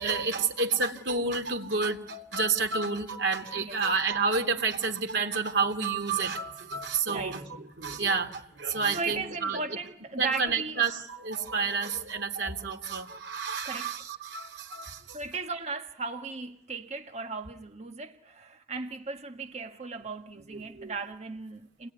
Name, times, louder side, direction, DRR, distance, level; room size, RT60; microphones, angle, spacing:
voice 1, 0.0-9.8 10.2-15.2 20.5-21.0, right 4 dB, 85° right, 3.0 m, -30 dB
voice 2, 8.9-10.8 13.7-13.9 15.1-21.9, right 4 dB, 40° right, 1.3 m, -37 dB
29.5 x 20.5 x 9.6 m
head